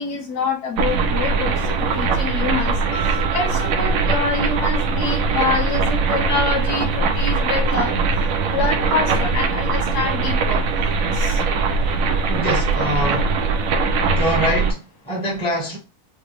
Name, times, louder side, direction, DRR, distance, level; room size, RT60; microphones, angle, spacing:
voice 1, 0.0-1.5 1.9-2.7 3.3-7.9 8.5-10.6 11.2-11.4 12.1-12.2, left 4 dB, 80° left, 1.8 m, -25 dB
sound 1, 0.8-14.7, right 4 dB, 65° right, 1.0 m, -21 dB
Mallet percussion, 2.9-5.3, right 9 dB, 55° left, 2.0 m, -35 dB
voice 2, 12.3-13.3 14.0-15.8, equal, 5° left, 1.1 m, -24 dB
4.5 x 2.1 x 3.3 m
omnidirectional pair, 1.6 m